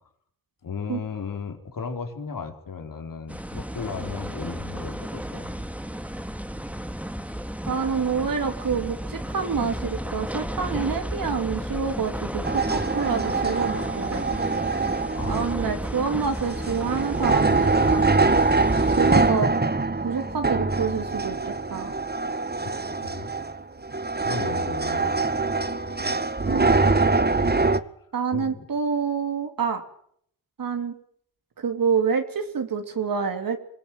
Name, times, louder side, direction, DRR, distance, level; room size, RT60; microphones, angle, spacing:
voice 1, 0.6-5.6 15.1-15.4 15.7-15.9 23.0-23.3 24.2-25.2 27.4-27.7 28.3-28.6, left 5 dB, 65° left, 5 dB, 4.4 m, -35 dB
sound 1, 3.3-19.3, equal, 5° right, 2.2 m, -33 dB
voice 2, 7.7-14.7 15.3-18.4 18.9-19.5 20.0-21.9 26.4-26.8 28.1-29.8 30.6-31.0 31.6-33.6, right 6 dB, 65° right, 5 dB, 3.2 m, -27 dB
sound 2, 12.4-27.8, right 3 dB, 25° right, 1.9 m, -24 dB
26.0 x 17.5 x 9.2 m, 0.67 s
supercardioid pair, 45°, 36 cm